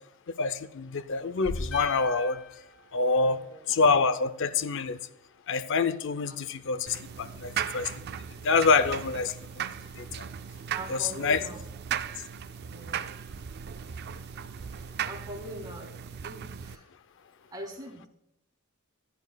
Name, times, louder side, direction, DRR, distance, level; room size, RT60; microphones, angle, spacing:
voice 1, 0.4-2.4 2.9-3.4 3.7-5.0 5.5-6.9 7.2-7.9 8.4-9.3 10.0-10.1 10.9-11.4, left 4 dB, 60° left, 13 dB, 0.5 m, -26 dB
sound 1, 1.7-4.0, left 4 dB, 75° left, 3.8 m, -43 dB
voice 2, 3.2-3.7 6.3-6.4 10.7-11.6 12.7-13.1 15.0-15.9 16.2-16.8 17.5-18.1, right 1 dB, 20° right, 0 dB, 2.1 m, -42 dB
sound 2, 6.9-16.7, right 8 dB, 50° right, 0.3 m, -37 dB
15.5 x 10.5 x 2.2 m, 0.77 s
head